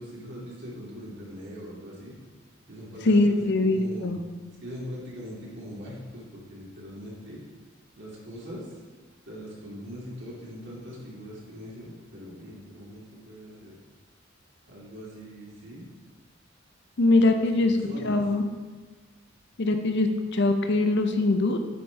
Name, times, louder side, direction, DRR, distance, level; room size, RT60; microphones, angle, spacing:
voice 1, 0.0-2.1 2.7-4.1 4.6-7.4 8.0-8.7 9.3-13.8 14.7-15.9 17.4-18.2, equal, 60° right, -6 dB, 2.4 m, -41 dB
voice 2, 3.0-4.2 17.0-17.8 18.0-18.4 19.6-21.6, left 2 dB, 60° left, 6 dB, 0.6 m, -22 dB
9.4 x 5.3 x 3.4 m, 1.4 s
head